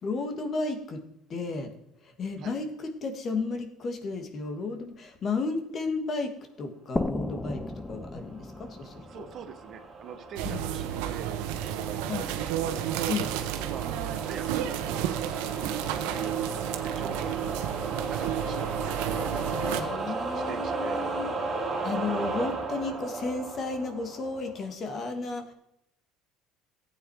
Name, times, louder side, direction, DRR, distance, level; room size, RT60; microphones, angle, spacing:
voice 1, 0.0-1.0 1.3-1.7 2.0-6.3 6.6-7.6 7.9-9.2 10.4-10.6 12.1-12.3 13.1-13.3 19.7-25.5, left 3 dB, 35° left, 6 dB, 2.1 m, -33 dB
sound 1, 7.0-10.5, left 2 dB, 10° left, 0.6 m, -35 dB
sound 2, 8.2-24.7, right 3 dB, 15° right, 3.1 m, -35 dB
voice 2, 9.1-11.3 11.6-12.2 12.7-13.1 13.6-14.0 14.2-14.9 15.5-17.5 17.8-18.8 19.2-21.1 22.0-22.4, right 7 dB, 45° right, 8 dB, 1.4 m, -44 dB
sound 3, 10.4-19.8, right 11 dB, 90° right, 1.3 m, -31 dB
15.0 x 9.0 x 4.8 m, 0.79 s
cardioid pair, 135°, 0 cm